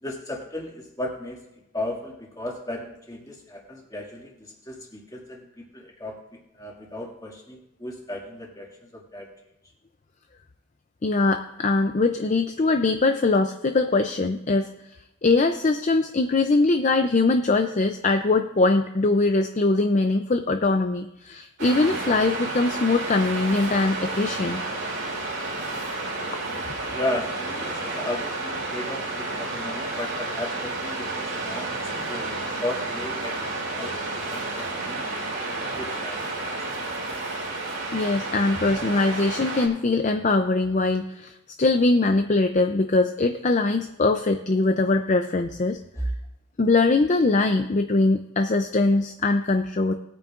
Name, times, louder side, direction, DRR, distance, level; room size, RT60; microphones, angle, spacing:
voice 1, 0.0-1.4 1.7-6.2 6.5-9.3 26.9-33.9 34.3-35.0 35.6-36.6 46.0-46.1, left 1 dB, 15° left, -1 dB, 2.1 m, -35 dB
voice 2, 11.0-14.7 15.2-24.6 37.9-45.8 46.6-49.9, left 3 dB, 35° left, 7 dB, 0.4 m, -22 dB
Waves surf, 21.6-39.7, right 2 dB, 55° right, 2.9 m, -31 dB
19.5 x 9.0 x 2.5 m, 0.89 s
head